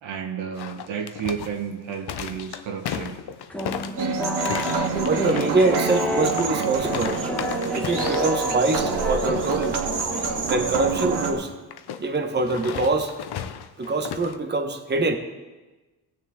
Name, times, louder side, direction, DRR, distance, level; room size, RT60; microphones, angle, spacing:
voice 1, 0.0-3.2, right 7 dB, 75° right, 3 dB, 1.6 m, -32 dB
sound 1, 0.5-8.4 8.7-9.0 9.3-9.7 11.7-14.4, left 9 dB, 55° left, 0.8 m, -34 dB
sound 2, 3.5-10.9, left 1 dB, 5° left, 1.2 m, -31 dB
sound 3, 4.0-11.3, right 5 dB, 55° right, 2.0 m, -27 dB
voice 2, 5.0-7.2 7.7-9.8 10.4-11.5 12.0-13.5 13.8-15.2, right 3 dB, 20° right, 5 dB, 1.1 m, -24 dB
18.5 x 6.7 x 3.7 m, 1.2 s
cardioid pair, 75°, 46 cm